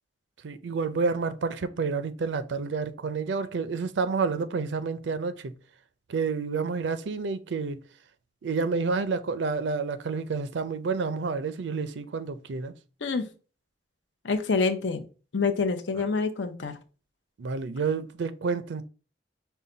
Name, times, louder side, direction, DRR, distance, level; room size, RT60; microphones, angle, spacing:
voice 1, 0.4-5.6 6.1-7.8 8.4-12.8 17.4-18.8, right 4 dB, 75° right, 0.5 m, -29 dB
voice 2, 14.2-15.0 15.3-16.8, left 4 dB, 90° left, 0.7 m, -26 dB
5.5 x 2.2 x 3.8 m
head